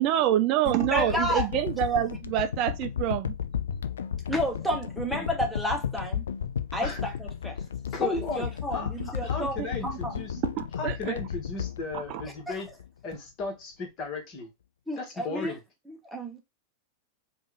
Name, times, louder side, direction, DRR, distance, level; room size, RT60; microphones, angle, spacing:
voice 1, 0.0-3.4 9.0-9.1 9.4-10.0 10.4-11.2 11.9-12.2, right 12 dB, 40° right, 0.4 m, -27 dB
sound 1, 0.7-12.9 13.4-13.5, left 8 dB, 65° left, 0.3 m, -34 dB
voice 2, 0.9-1.5 4.3-6.2 6.7-7.6 8.0-10.2 12.2-12.5 14.9-15.6 15.9-16.4, equal, ahead, 1.0 m, -31 dB
voice 3, 7.9-8.5 8.7-8.9 9.2-10.4 10.8-12.7 13.0-14.5 15.0-15.6, left 4 dB, 35° left, 1.5 m, -35 dB
3.5 x 2.5 x 3.3 m
figure-of-eight pair, 90°, 0 cm